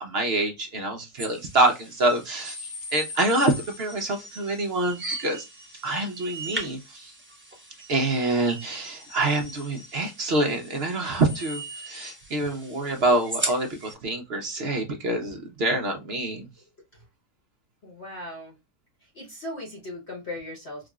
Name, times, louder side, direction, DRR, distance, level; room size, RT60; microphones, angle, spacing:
voice 1, 0.0-5.5 5.8-7.1 7.9-16.5, right 2 dB, 55° right, 0.7 m, -26 dB
sound 1, 1.2-13.9, right 1 dB, 10° right, 0.5 m, -38 dB
voice 2, 17.8-18.5 19.1-20.9, left 1 dB, 45° left, 1.1 m, -38 dB
4.7 x 2.3 x 2.3 m
omnidirectional pair, 1.8 m